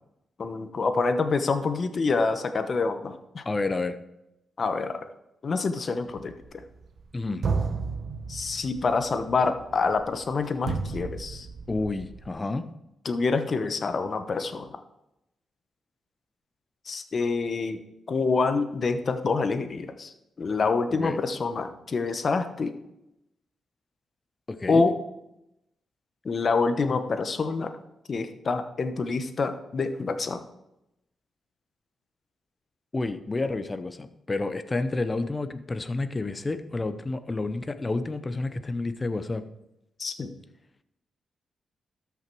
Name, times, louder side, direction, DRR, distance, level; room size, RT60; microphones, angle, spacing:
voice 1, 0.4-3.4 4.6-5.0 5.4-6.6 8.3-11.5 13.0-14.8 16.9-17.8 18.1-22.7 24.7-25.0 26.2-27.7 28.1-30.4 40.0-40.3, left 4 dB, 45° left, 9 dB, 1.0 m, -27 dB
voice 2, 3.4-4.0 7.1-7.4 11.7-12.6 20.9-21.2 24.5-24.8 32.9-39.4, left 3 dB, 25° left, 11 dB, 0.7 m, -30 dB
sound 1, 6.1-7.1 7.4-12.3, right 4 dB, 55° right, 1.1 m, -33 dB
13.0 x 5.9 x 4.6 m, 0.87 s
cardioid pair, 95°, 0 cm